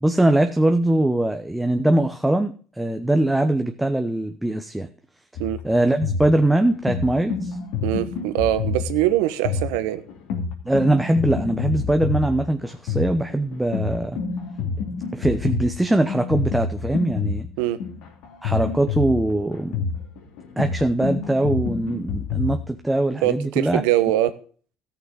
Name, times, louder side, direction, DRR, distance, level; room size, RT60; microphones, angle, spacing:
voice 1, 0.0-4.9 5.6-7.6 10.6-14.2 15.1-17.5 18.4-19.8 20.6-23.8, right 1 dB, 5° right, 6 dB, 0.9 m, -21 dB
sound 1, 5.4-22.6, left 5 dB, 75° left, 2.5 m, -28 dB
voice 2, 7.8-10.0 17.6-17.8 23.2-24.3, right 13 dB, 85° right, 13 dB, 1.1 m, -22 dB
13.5 x 6.0 x 7.2 m, 0.43 s
supercardioid pair, 95°, 0 cm